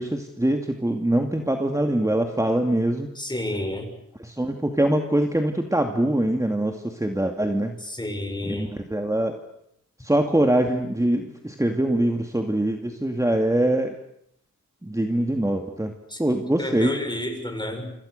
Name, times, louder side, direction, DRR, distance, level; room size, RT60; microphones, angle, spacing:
voice 1, 0.0-3.1 4.2-7.8 8.4-9.4 10.0-13.9 14.8-15.9 16.2-17.0, right 1 dB, 10° right, 4 dB, 2.5 m, -23 dB
voice 2, 3.2-3.9 7.8-8.7 16.1-16.2 16.6-17.9, left 1 dB, 15° left, 5 dB, 7.0 m, -30 dB
28.0 x 26.5 x 6.8 m, 0.75 s
wide cardioid pair, 70°, 29 cm